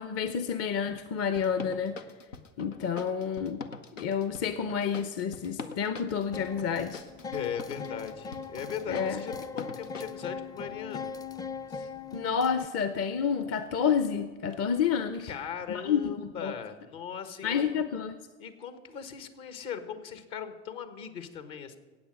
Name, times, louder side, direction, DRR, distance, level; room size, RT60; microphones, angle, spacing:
voice 1, 0.0-1.9 2.6-3.6 4.0-7.0 8.9-9.2 11.8-11.9 12.1-15.3 15.7-16.5 17.4-18.1, left 7 dB, 40° left, 10 dB, 0.8 m, -29 dB
sound 1, 1.3-10.2, left 5 dB, 90° left, 0.8 m, -43 dB
sound 2, 6.3-12.7, left 5 dB, 10° left, 0.4 m, -40 dB
voice 2, 7.3-11.1 15.2-17.8 18.4-21.8, left 8 dB, 60° left, 9 dB, 1.6 m, -39 dB
15.0 x 8.8 x 6.3 m, 1.4 s
figure-of-eight pair, 65°, 37 cm